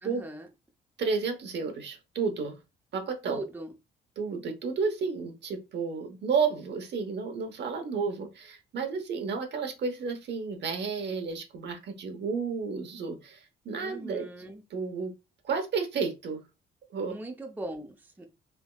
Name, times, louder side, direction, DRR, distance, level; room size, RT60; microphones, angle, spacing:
voice 1, 0.0-0.5 3.2-3.7 13.8-14.6 17.1-18.3, right 1 dB, 10° right, 3 dB, 0.5 m, -40 dB
voice 2, 1.0-2.6 2.9-3.4 4.2-14.3 14.7-15.1 15.4-16.4 16.9-17.1, right 5 dB, 60° right, 5 dB, 0.9 m, -31 dB
3.5 x 2.8 x 2.2 m, 0.26 s
cardioid pair, 90°, 20 cm